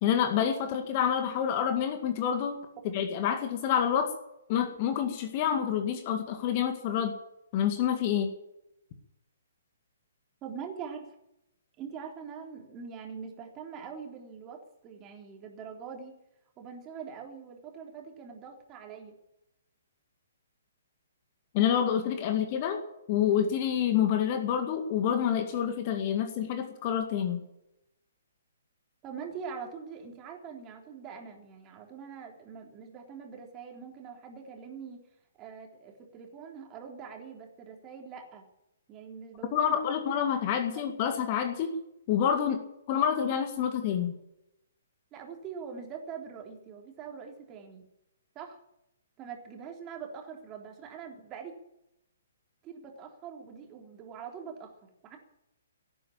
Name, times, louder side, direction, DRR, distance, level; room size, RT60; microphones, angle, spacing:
voice 1, 0.0-2.6 2.9-4.1 4.5-7.1 7.5-8.3 21.5-22.8 23.1-27.4 39.5-41.7 42.1-42.6 42.9-44.1, left 9 dB, 30° left, 7 dB, 2.0 m, -27 dB
voice 2, 10.4-11.1 11.8-16.2 16.6-19.2 29.0-35.0 35.4-38.4 38.9-39.8 40.7-40.8 45.1-47.9 48.4-48.6 49.2-51.5 52.6-55.2, right 6 dB, 20° right, 2 dB, 3.6 m, -43 dB
18.0 x 9.3 x 8.7 m, 0.82 s
figure-of-eight pair, 125°, 0 cm